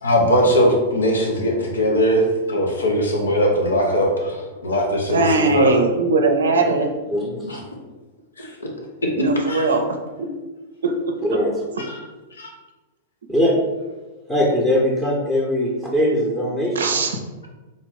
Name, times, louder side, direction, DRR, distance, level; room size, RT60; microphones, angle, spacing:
voice 1, 0.0-5.8 7.4-7.6 8.4-8.7 9.5-9.6 11.8-12.0 12.3-12.5, equal, 80° left, 0 dB, 0.8 m, -20 dB
voice 2, 5.1-6.9 9.2-9.8 10.2-10.3 10.8-11.2 16.8-17.2, right 3 dB, 70° right, 4 dB, 0.5 m, -19 dB
voice 3, 11.2-11.5 13.3-13.6 14.3-17.0, equal, ahead, -4 dB, 0.7 m, -21 dB
3.7 x 2.5 x 3.8 m, 1.2 s
figure-of-eight pair, 100°, 0 cm